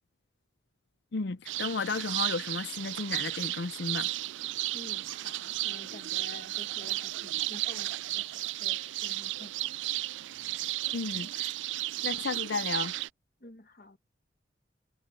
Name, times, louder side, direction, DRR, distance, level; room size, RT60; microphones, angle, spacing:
voice 1, 1.1-4.1 10.9-11.5 12.0-12.9, left 4 dB, 70° left, 0.6 m, -33 dB
sound 1, 1.5-13.1, right 17 dB, 85° right, 0.4 m, -34 dB
voice 2, 4.7-9.6 13.4-14.0, left 2 dB, 50° left, 1.3 m, -49 dB
head